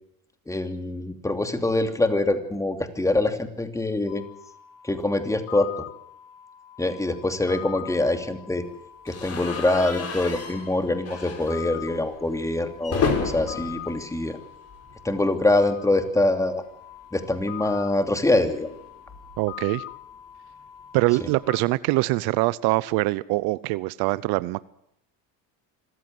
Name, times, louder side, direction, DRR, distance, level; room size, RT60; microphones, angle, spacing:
voice 1, 0.5-4.2 4.8-5.7 6.8-8.6 9.0-14.4 15.0-16.6 17.1-18.7, left 2 dB, 10° left, 7 dB, 2.9 m, -24 dB
sound 1, 4.1-21.6, left 13 dB, 80° left, 2.7 m, -43 dB
sound 2, 9.1-15.1 15.4-15.6 15.9-16.0 17.2-19.6, left 5 dB, 40° left, 5.0 m, -33 dB
voice 2, 19.4-19.8 20.9-24.6, right 21 dB, 70° right, 18 dB, 0.8 m, -23 dB
26.0 x 14.5 x 7.8 m, 0.75 s
supercardioid pair, 105°, 39 cm